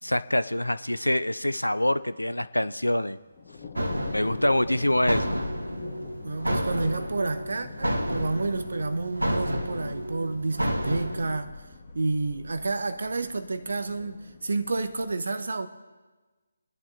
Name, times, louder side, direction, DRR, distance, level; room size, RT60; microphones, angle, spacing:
voice 1, 0.0-3.2 4.1-5.4, left 1 dB, 85° left, 0.6 m, -25 dB
sound 1, 1.3-15.1, left 5 dB, 30° left, 1.7 m, -47 dB
sound 2, 3.8-11.4, equal, 80° right, 1.5 m, -31 dB
voice 2, 6.2-11.5 11.9-15.7, right 3 dB, 60° right, 1.1 m, -30 dB
24.0 x 11.0 x 2.9 m
figure-of-eight pair, 150°, 0 cm